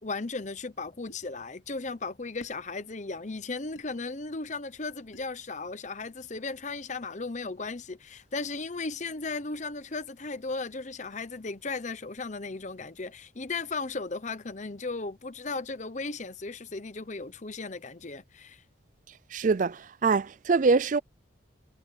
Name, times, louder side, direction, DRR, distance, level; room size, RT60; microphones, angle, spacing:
voice 1, 0.0-18.6, left 3 dB, 40° left, 0.9 m, -36 dB
sound 1, 1.1-1.3 2.4-2.6 3.8-3.9 5.1-5.4, left 1 dB, 80° left, 2.9 m, -50 dB
voice 2, 19.3-21.0, right 4 dB, 40° right, 0.4 m, -24 dB
head